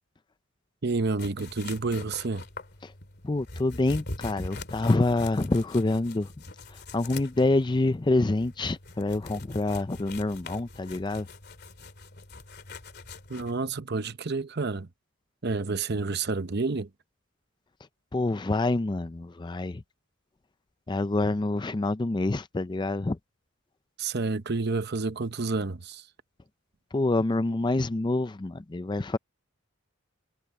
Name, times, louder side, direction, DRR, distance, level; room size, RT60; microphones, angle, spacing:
voice 1, 0.8-2.4 13.3-14.9 15.4-16.9 24.0-26.0, right 3 dB, 50° right, 0.8 m, -29 dB
sound 1, 1.2-13.5, left 2 dB, 50° left, 2.7 m, -43 dB
voice 2, 3.2-6.3 6.9-11.3 18.1-19.8 20.9-23.2 26.9-29.2, left 2 dB, 20° left, 0.4 m, -26 dB
head